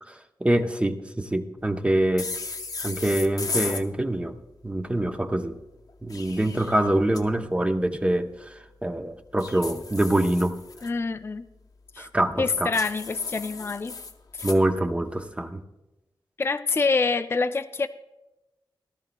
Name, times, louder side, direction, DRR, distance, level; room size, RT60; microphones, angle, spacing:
voice 1, 0.0-2.3 2.8-4.4 4.6-5.6 6.0-10.6 12.0-12.7 14.4-15.6, right 1 dB, 15° right, 8 dB, 0.6 m, -25 dB
sound 1, 2.2-3.8 5.9-7.2 9.4-10.9 12.7-14.6, left 4 dB, 45° left, 0.8 m, -35 dB
voice 2, 10.8-11.5 11.9-12.1 12.4-14.0 14.3-14.5 16.4-17.9, left 4 dB, 25° left, 9 dB, 0.3 m, -26 dB
18.0 x 12.5 x 2.2 m, 1.0 s
wide cardioid pair, 105°, 9 cm